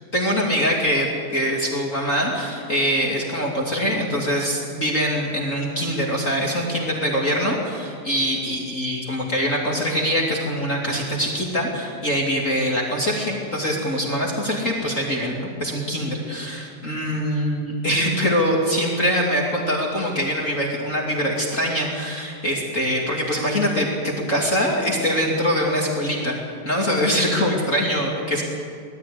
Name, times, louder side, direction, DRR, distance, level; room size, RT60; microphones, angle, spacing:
voice 1, 0.1-26.4 26.6-28.4, equal, 30° left, -2 dB, 1.4 m, -23 dB
20.0 x 13.0 x 9.8 m, 2.3 s
omnidirectional pair, 5.4 m